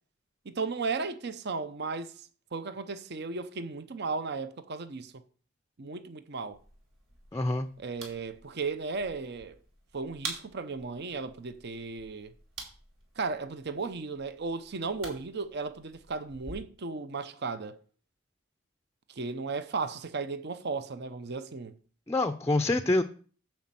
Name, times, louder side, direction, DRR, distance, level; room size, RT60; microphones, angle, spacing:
voice 1, 0.5-2.1 2.5-5.1 5.8-6.6 7.8-9.5 9.9-12.3 13.2-17.8 19.2-21.7, right 4 dB, 55° right, 0.7 m, -35 dB
sound 1, 6.5-16.5, right 3 dB, 80° right, 3.4 m, -47 dB
voice 2, 7.3-7.7 22.1-23.0, left 2 dB, 15° left, 0.5 m, -26 dB
9.5 x 4.3 x 7.5 m
head